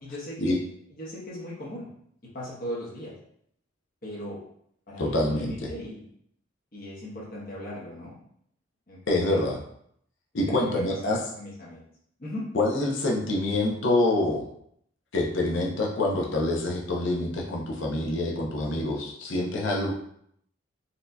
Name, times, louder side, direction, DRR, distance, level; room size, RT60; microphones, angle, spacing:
voice 1, 0.0-0.5 1.0-1.9 2.3-3.1 4.0-4.4 4.9-6.1 6.7-8.1 8.9-9.4 10.5-11.8 12.2-12.4, equal, 45° left, -7 dB, 1.0 m, -38 dB
voice 2, 5.0-5.5 9.1-9.6 10.3-11.2 12.5-14.5 15.1-19.9, left 2 dB, 60° left, -1 dB, 0.6 m, -26 dB
4.2 x 2.6 x 2.2 m, 0.69 s
head